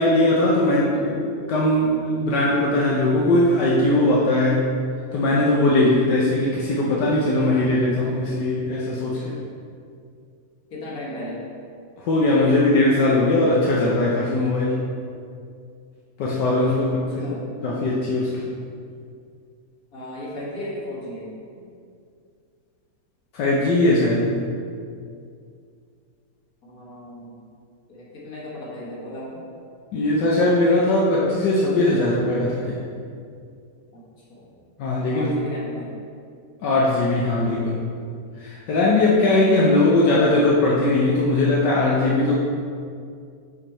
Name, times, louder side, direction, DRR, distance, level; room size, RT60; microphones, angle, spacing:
voice 1, 0.0-4.7 5.1-9.3 12.0-14.8 16.2-18.4 23.3-24.4 29.9-32.8 34.8-35.3 36.6-37.8 38.4-42.3, left 2 dB, 80° left, -4 dB, 1.5 m, -20 dB
voice 2, 0.7-1.0 10.7-11.4 16.8-17.5 19.9-21.6 26.6-27.5 27.9-29.4 33.9-34.5 35.1-35.9, left 1 dB, 60° left, -5 dB, 2.1 m, -36 dB
6.8 x 5.6 x 4.3 m, 2.3 s
omnidirectional pair, 1.8 m